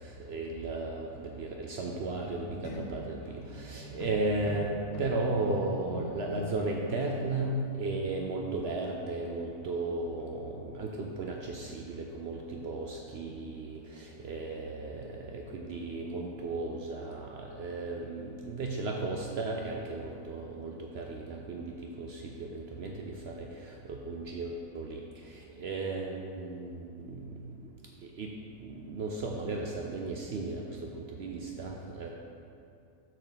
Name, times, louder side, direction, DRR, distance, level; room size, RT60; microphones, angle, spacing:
voice 1, 0.3-4.7 5.0-21.7 22.0-23.3 23.9-25.0 25.6-27.2 28.2-28.3 28.6-30.6 31.1-32.1, right 2 dB, 70° right, 0 dB, 0.6 m, -35 dB
sound 1, 2.2-6.7 7.0-7.3, left 3 dB, 60° left, 0.9 m, -43 dB
6.4 x 6.4 x 4.0 m, 2.6 s
omnidirectional pair, 1.7 m